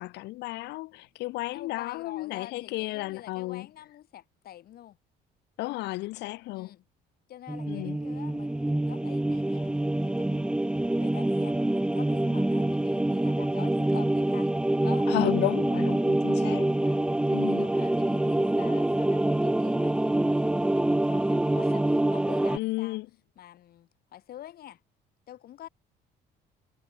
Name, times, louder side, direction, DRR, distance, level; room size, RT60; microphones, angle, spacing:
voice 1, 0.0-3.7 5.6-6.7 7.7-8.0 15.1-16.7 17.3-17.7 22.5-23.1, left 19 dB, 85° left, 2.4 m, -33 dB
voice 2, 1.5-5.0 6.5-6.8 7.3-14.5 14.8-15.1 16.3-16.5 16.8-17.0 17.3-23.0 23.4-24.8 25.3-25.7, left 12 dB, 65° left, 5.7 m, -47 dB
sound 1, 7.5-22.6, right 1 dB, 5° right, 0.5 m, -26 dB
cardioid pair, 110°, 17 cm